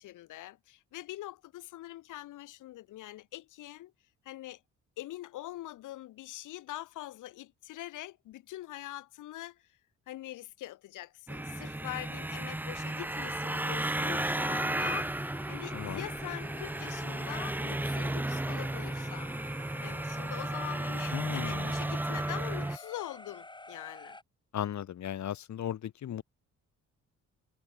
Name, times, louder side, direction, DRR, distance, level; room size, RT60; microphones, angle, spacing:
voice 1, 0.0-3.9 4.3-4.6 5.0-9.8 10.1-15.1 15.5-19.3 19.8-24.2, left 15 dB, 85° left, 3.5 m, -43 dB
sound 1, 11.3-22.8, right 1 dB, 5° right, 0.7 m, -34 dB
sound 2, 14.1-24.2, left 2 dB, 15° left, 4.8 m, -48 dB
voice 2, 15.7-16.0 21.1-21.8 24.5-26.2, left 10 dB, 65° left, 6.7 m, -36 dB
cardioid pair, 90°, 30 cm